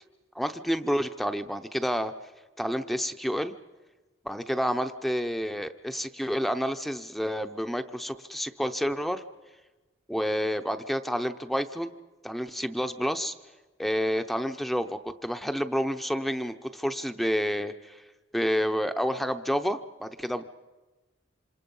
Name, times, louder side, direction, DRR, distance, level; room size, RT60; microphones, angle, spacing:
voice 1, 0.3-2.1 2.6-3.5 4.2-9.2 10.1-11.9 12.2-13.3 13.8-18.0 18.3-20.4, equal, ahead, 8 dB, 0.7 m, -29 dB
27.5 x 26.5 x 5.5 m, 1.2 s
head